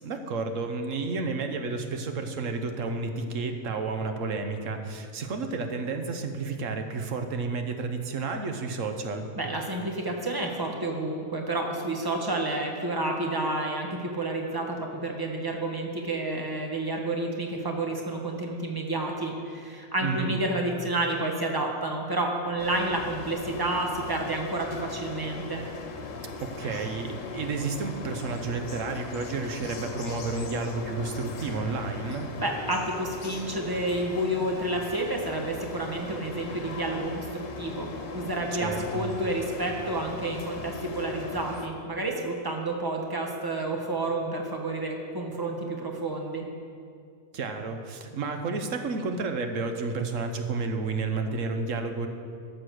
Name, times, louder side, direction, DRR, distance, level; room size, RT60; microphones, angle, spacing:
voice 1, 0.0-9.3 20.0-20.3 26.4-32.3 38.6-39.1 47.3-52.1, right 4 dB, 85° right, 6 dB, 1.3 m, -31 dB
voice 2, 9.3-25.6 32.4-46.4, right 2 dB, 20° right, 1 dB, 1.3 m, -30 dB
sound 1, 22.6-41.7, left 4 dB, 85° left, 1.3 m, -39 dB
13.0 x 6.9 x 6.5 m, 2.4 s
omnidirectional pair, 1.3 m